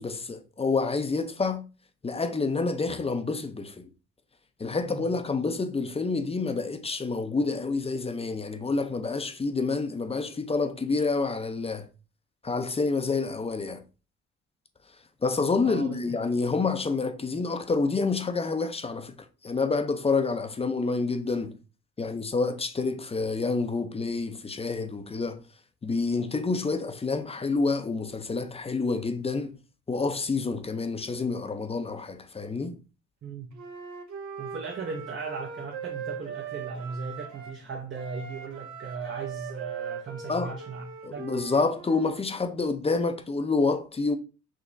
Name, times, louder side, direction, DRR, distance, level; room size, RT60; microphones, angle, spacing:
voice 1, 0.0-1.7 2.0-3.9 4.6-11.9 12.4-13.8 15.2-19.1 19.4-21.6 22.0-25.4 25.8-29.6 29.9-32.8 40.3-40.6 41.0-44.2, left 4 dB, 20° left, 0.6 m, -28 dB
voice 2, 15.6-16.2 33.2-33.6 34.4-40.8 41.1-41.3, right 5 dB, 40° right, 0.8 m, -37 dB
Wind instrument woodwind instrument, 33.5-37.6 37.9-42.2, right 6 dB, 70° right, 0.9 m, -40 dB
4.9 x 2.9 x 2.6 m
cardioid pair, 90°, 30 cm